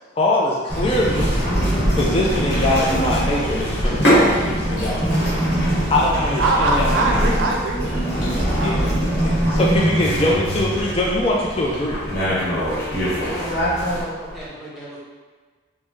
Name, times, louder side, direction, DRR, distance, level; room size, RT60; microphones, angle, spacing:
voice 1, 0.2-1.3 2.0-5.2 5.9-6.9 8.6-8.9 9.2-12.0, left 1 dB, 30° left, -3 dB, 0.3 m, -22 dB
sound 1, 0.7-14.0, equal, 45° left, 1.2 m, -23 dB
Musical instrument, 1.7-5.3, right 2 dB, 85° left, 0.9 m, -37 dB
Sink (filling or washing), 3.6-14.5, equal, 60° left, 1.2 m, -28 dB
voice 2, 6.4-8.1 8.5-9.4, right 2 dB, 75° right, 0 dB, 0.4 m, -23 dB
voice 3, 13.9-15.0, equal, ahead, -8 dB, 0.7 m, -36 dB
3.4 x 2.0 x 3.1 m, 1.4 s
head